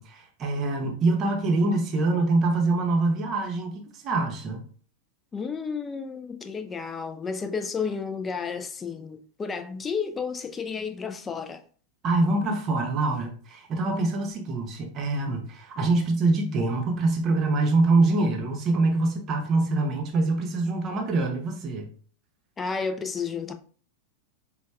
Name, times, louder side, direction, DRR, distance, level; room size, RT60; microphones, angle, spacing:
voice 1, 0.0-4.6 12.0-21.9, right 2 dB, 30° right, 0.8 m, -24 dB
voice 2, 5.3-11.6 22.6-23.5, left 5 dB, 20° left, 0.4 m, -32 dB
5.1 x 2.3 x 2.2 m
figure-of-eight pair, 90°, 0 cm